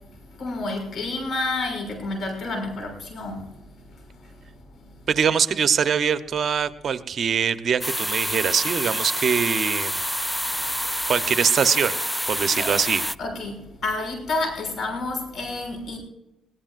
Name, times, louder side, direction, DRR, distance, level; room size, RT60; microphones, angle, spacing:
voice 1, 0.3-3.5 4.2-4.3 12.6-12.7 13.2-16.0, left 2 dB, 60° left, 4 dB, 6.5 m, -29 dB
voice 2, 5.1-10.0 11.1-12.0 12.3-13.0, right 7 dB, 50° right, 12 dB, 0.9 m, -23 dB
sound 1, 7.8-13.2, equal, ahead, 0.4 m, -27 dB
21.5 x 17.5 x 2.6 m, 0.89 s
cardioid pair, 90°, 0 cm